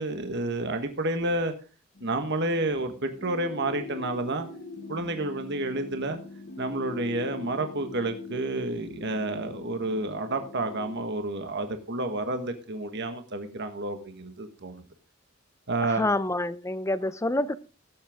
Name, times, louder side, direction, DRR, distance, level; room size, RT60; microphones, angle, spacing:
voice 1, 0.0-1.5 2.0-4.5 4.9-6.2 6.6-14.8 15.7-16.0, right 2 dB, 55° right, 1.4 m, -30 dB
sound 1, 2.0-11.0, left 4 dB, 40° left, 0.9 m, -43 dB
voice 2, 16.0-17.6, left 1 dB, 15° left, 0.6 m, -27 dB
17.0 x 7.8 x 3.6 m
head